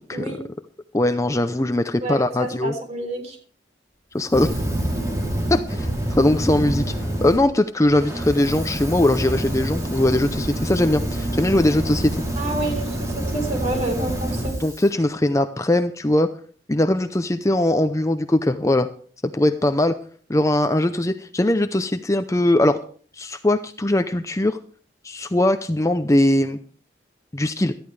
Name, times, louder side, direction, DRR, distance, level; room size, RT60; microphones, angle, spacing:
voice 1, 0.9-2.7 4.1-4.5 5.5-6.9 7.2-12.1 14.6-16.3 16.7-18.9 19.3-19.9 20.3-22.8 23.2-24.6 25.0-26.6 27.3-27.7, left 1 dB, 15° left, 9 dB, 0.6 m, -20 dB
voice 2, 2.0-3.4 12.4-14.6, right 2 dB, 40° right, 3 dB, 3.8 m, -29 dB
Fire, 4.2-7.4 7.8-14.9, right 1 dB, 20° right, 3.4 m, -27 dB
18.0 x 13.0 x 3.3 m, 0.44 s
head